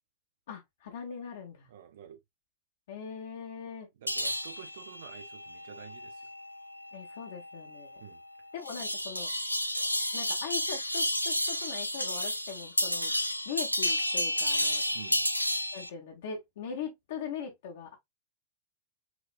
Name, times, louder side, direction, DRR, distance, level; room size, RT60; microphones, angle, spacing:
voice 1, 0.5-1.7 2.9-3.9 6.9-8.0 8.5-9.3 10.1-13.1 13.4-14.8 15.7-18.0, left 7 dB, 60° left, 1.2 m, -40 dB
voice 2, 1.7-2.2 3.9-6.3 8.0-8.2 14.9-15.2, right 9 dB, 60° right, 0.9 m, -49 dB
sound 1, 4.1-15.9, left 1 dB, 90° left, 0.4 m, -32 dB
6.1 x 3.0 x 2.3 m
figure-of-eight pair, 90°, 0 cm